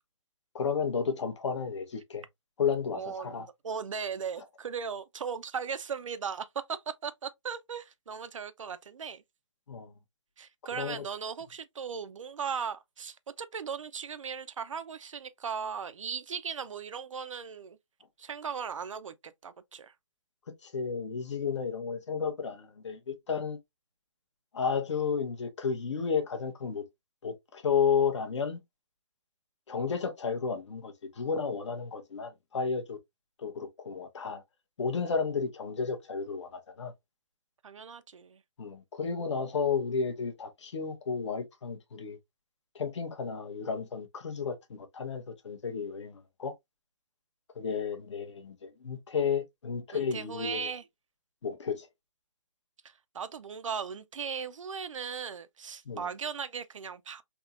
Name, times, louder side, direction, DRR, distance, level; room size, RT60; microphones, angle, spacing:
voice 1, 0.5-2.2 2.6-3.5 9.7-9.9 10.8-11.0 20.6-23.6 24.5-26.8 27.2-28.6 29.7-33.0 33.4-34.4 34.8-36.9 38.6-42.2 42.7-46.5 47.5-50.7 51.4-51.9 55.9-56.1, left 6 dB, 65° left, 1.0 m, -32 dB
voice 2, 2.9-9.2 10.4-17.8 18.2-19.9 37.6-38.4 49.9-50.8 52.8-57.2, right 6 dB, 90° right, 0.5 m, -38 dB
3.6 x 2.9 x 2.4 m
hypercardioid pair, 155°, 16 cm